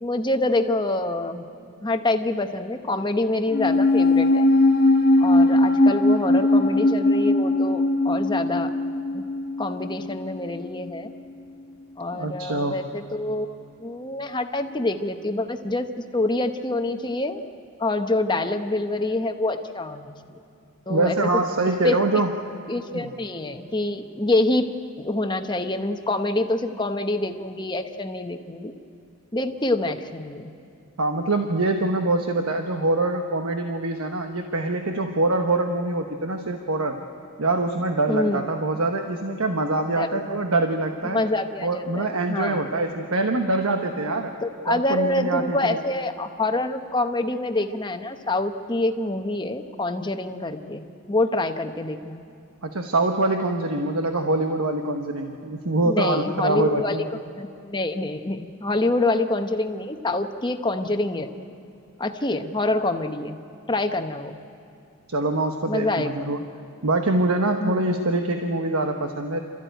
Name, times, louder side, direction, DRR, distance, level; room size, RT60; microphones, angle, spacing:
voice 1, 0.0-1.4 1.8-4.5 5.2-8.7 9.1-9.2 9.6-11.1 12.0-13.5 13.8-17.4 17.8-20.4 20.9-21.4 21.8-22.0 22.7-24.7 25.0-28.7 29.3-30.5 38.1-38.4 40.0-40.2 41.0-42.6 44.4-52.2 55.8-57.0 57.4-61.3 62.0-63.4 63.7-64.4 65.7-66.1 67.6-67.8, left 2 dB, 20° left, 7 dB, 0.9 m, -26 dB
sound 1, 3.5-10.1 10.3-10.4, left 2 dB, 50° left, 1.3 m, -19 dB
voice 2, 12.1-12.8 20.9-22.3 22.9-23.1 31.0-37.0 37.4-41.2 41.6-44.3 44.7-45.8 52.6-57.0 65.1-66.4 66.8-69.4, right 2 dB, 85° right, 5 dB, 1.2 m, -24 dB
28.0 x 14.0 x 9.2 m, 2.7 s
head